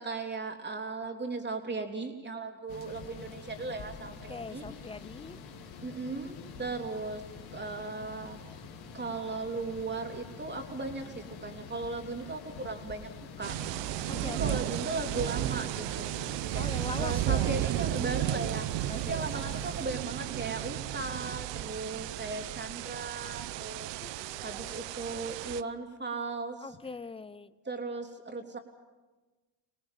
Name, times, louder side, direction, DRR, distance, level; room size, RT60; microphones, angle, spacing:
voice 1, 0.0-4.6 5.8-7.2 7.5-8.4 8.9-13.1 13.4-13.5 14.1-16.1 16.5-16.7 17.0-18.8 19.1-26.6 27.6-28.6, right 3 dB, 20° right, 4 dB, 3.3 m, -37 dB
sound 1, 2.7-19.9, left 5 dB, 75° left, 3.3 m, -47 dB
voice 2, 4.3-5.4 14.1-14.7 16.5-17.6 18.9-19.3 24.0-24.8 26.6-27.5, left 4 dB, 10° left, 17 dB, 0.7 m, -42 dB
sound 2, 13.4-25.6, right 15 dB, 60° right, 0.8 m, -34 dB
25.0 x 19.0 x 7.5 m, 1.2 s
supercardioid pair, 90°, 48 cm